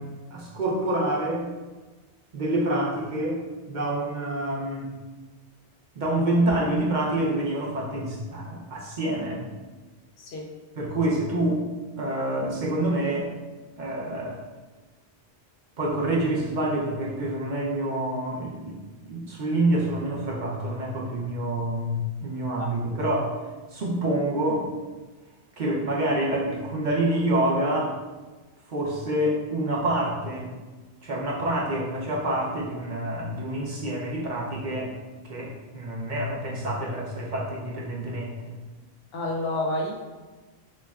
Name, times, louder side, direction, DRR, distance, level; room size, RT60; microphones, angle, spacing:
voice 1, 0.0-1.5 2.3-4.9 6.0-9.4 10.8-11.7 12.0-13.3 13.8-14.4 15.8-23.4 23.7-24.7 25.6-28.0 28.7-30.6 31.0-34.9 35.2-38.4, right 1 dB, 55° right, -3 dB, 0.7 m, -27 dB
voice 2, 10.2-10.5 22.6-22.7 39.1-39.9, left 1 dB, 70° left, 0 dB, 0.9 m, -29 dB
6.3 x 2.1 x 2.3 m, 1.2 s
omnidirectional pair, 1.1 m